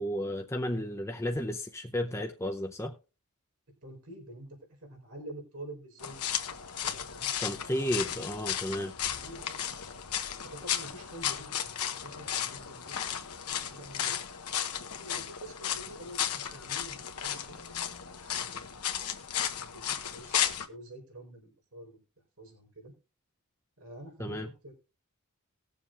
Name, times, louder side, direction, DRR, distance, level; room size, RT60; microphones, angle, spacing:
voice 1, 0.0-2.9 7.4-9.0 24.2-24.5, equal, 10° left, 0.6 m, -33 dB
voice 2, 3.8-8.6 9.0-9.6 9.9-14.2 14.9-17.8 18.1-18.8 19.4-22.0 22.4-22.9 23.8-24.7, right 1 dB, 70° right, 4.4 m, -49 dB
sound 1, 6.0-20.7, left 9 dB, 85° left, 1.1 m, -34 dB
19.5 x 7.1 x 2.5 m
head